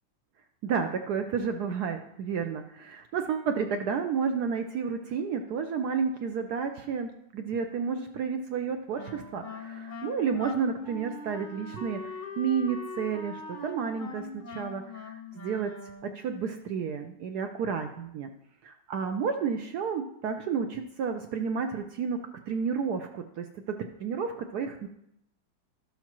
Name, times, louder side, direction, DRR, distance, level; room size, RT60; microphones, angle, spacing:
voice 1, 0.6-15.7 16.0-18.3 18.6-22.2 22.5-24.9, right 6 dB, 70° right, 5 dB, 0.9 m, -31 dB
Wind instrument woodwind instrument, 8.9-16.3, left 3 dB, 40° left, 0.7 m, -41 dB
12.5 x 7.2 x 3.0 m, 0.77 s
omnidirectional pair, 2.2 m